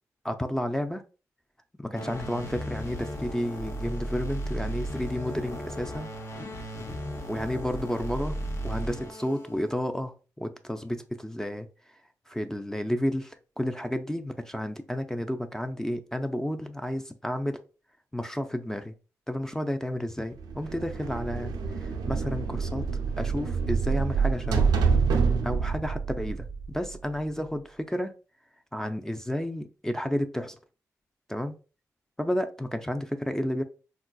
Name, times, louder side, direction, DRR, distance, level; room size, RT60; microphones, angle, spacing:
voice 1, 0.2-1.0 1.8-6.1 7.3-8.4 8.6-11.7 12.3-17.6 18.1-18.9 19.3-22.8 23.2-24.7 25.4-28.1 28.7-30.6 31.3-31.6 32.2-33.6, left 1 dB, 5° left, 0.4 m, -31 dB
sound 1, 1.9-9.7, right 1 dB, 45° left, 0.7 m, -35 dB
sound 2, 20.4-27.2, right 5 dB, 90° right, 0.4 m, -27 dB
3.7 x 2.4 x 2.3 m
supercardioid pair, 45°, 7 cm